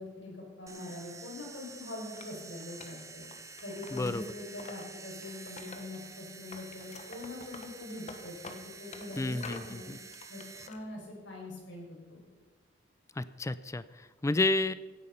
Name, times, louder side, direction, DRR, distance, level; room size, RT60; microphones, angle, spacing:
voice 1, 0.0-3.2 3.6-9.9 10.3-12.3, left 2 dB, 80° left, -2 dB, 5.6 m, -43 dB
sound 1, 0.7-10.7, right 4 dB, 15° right, 0.8 m, -49 dB
Wood, 2.2-4.8 5.2-6.2 6.5-9.7 10.1-10.8, left 3 dB, 40° left, 1.3 m, -48 dB
voice 2, 3.9-4.2 9.2-10.0 13.2-14.7, left 2 dB, 15° left, 15 dB, 0.4 m, -31 dB
16.5 x 9.7 x 5.6 m, 1.3 s
head